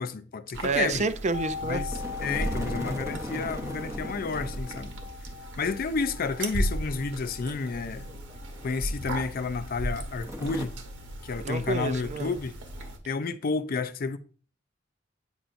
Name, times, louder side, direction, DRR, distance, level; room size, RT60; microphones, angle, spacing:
voice 1, 0.0-1.1 1.7-1.9 2.2-4.9 5.6-8.1 8.6-10.7 11.2-12.6 13.0-14.2, left 4 dB, 50° left, 0.4 m, -31 dB
sound 1, 0.5-13.0, right 1 dB, 90° right, 1.2 m, -36 dB
voice 2, 0.6-1.8 11.4-12.3, right 4 dB, 40° right, 0.4 m, -29 dB
sound 2, 1.3-11.1 11.3-11.4, left 7 dB, 80° left, 1.2 m, -42 dB
sound 3, 1.9-5.1 5.4-5.5 6.8-8.8 9.0-9.1 10.2-10.7, equal, 15° right, 0.8 m, -38 dB
8.9 x 5.7 x 2.6 m
head